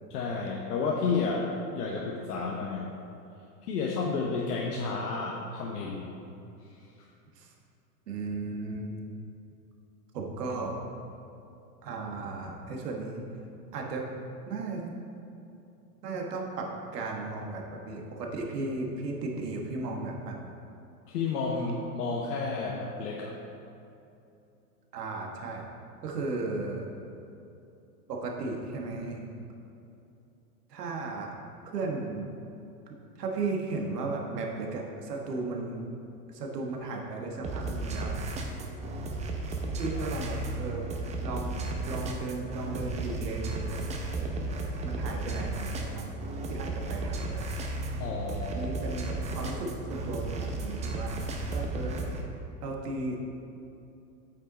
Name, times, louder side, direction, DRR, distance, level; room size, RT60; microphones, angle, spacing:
voice 1, 0.1-1.5 1.7-2.9 3.6-6.1 21.1-23.3 48.0-48.9, left 4 dB, 75° left, -2 dB, 1.0 m, -31 dB
voice 2, 8.1-8.9 10.1-10.8 11.8-13.2 13.7-14.1 14.5-14.9 16.0-20.4 24.9-25.7 26.0-26.9 28.1-29.3 30.7-31.3 31.7-32.3 33.2-35.9 36.3-38.2 39.8-40.9 41.2-43.8 44.1-44.3 44.8-47.5 48.5-52.1 52.6-53.2, right 3 dB, 80° right, 0 dB, 1.4 m, -35 dB
sound 1, 37.4-52.2, right 2 dB, 15° right, 0.5 m, -34 dB
8.4 x 5.4 x 4.0 m, 2.7 s
hypercardioid pair, 115°, 47 cm